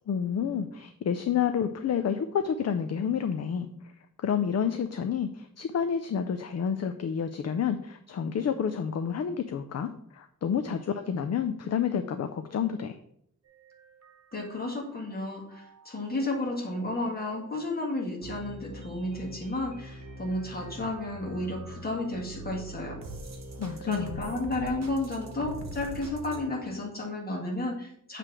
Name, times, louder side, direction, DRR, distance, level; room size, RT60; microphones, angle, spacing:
voice 1, 0.1-3.9 4.2-13.0 23.6-24.3, left 7 dB, 50° left, 8 dB, 0.5 m, -29 dB
sound 1, 13.5-26.4, right 2 dB, 55° right, 1.1 m, -44 dB
voice 2, 14.3-23.0 23.9-28.2, left 2 dB, 30° left, -2 dB, 1.8 m, -32 dB
7.5 x 3.3 x 6.1 m, 0.70 s
wide cardioid pair, 165°, 33 cm